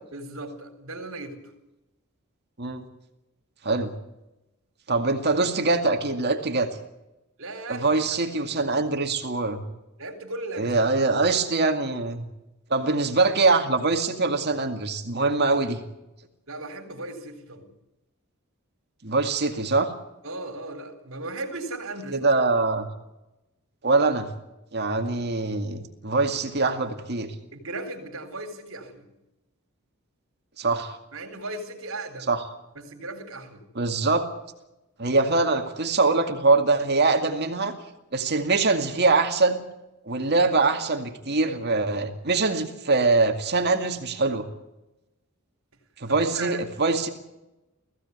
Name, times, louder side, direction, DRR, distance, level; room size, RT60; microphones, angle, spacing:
voice 1, 0.1-1.4 7.4-7.9 10.0-10.7 16.5-17.7 20.2-22.3 27.5-29.1 31.1-32.3 32.8-33.6 46.1-46.6, right 2 dB, 65° right, 7 dB, 3.9 m, -36 dB
voice 2, 4.9-6.7 7.7-9.6 10.6-12.2 12.7-15.8 19.0-19.9 22.1-22.9 23.8-24.3 24.7-27.3 30.6-31.0 32.3-32.4 33.7-34.3 35.0-37.7 38.1-39.6 40.1-44.5 46.0-47.1, right 3 dB, 50° right, 5 dB, 2.2 m, -23 dB
19.0 x 16.0 x 9.5 m, 0.94 s
head